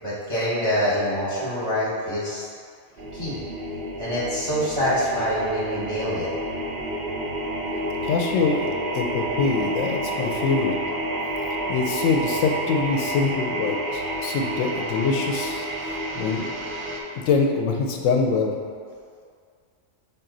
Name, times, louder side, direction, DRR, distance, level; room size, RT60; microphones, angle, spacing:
voice 1, 0.0-2.4 3.1-3.4 4.0-6.3, equal, 25° left, -10 dB, 0.9 m, -25 dB
sound 1, 3.0-17.0, right 1 dB, 55° right, 0.6 m, -29 dB
voice 2, 8.0-10.8 11.7-16.5 17.3-18.6, left 4 dB, 80° left, 2 dB, 0.9 m, -24 dB
5.4 x 2.5 x 3.8 m, 2.1 s
omnidirectional pair, 1.3 m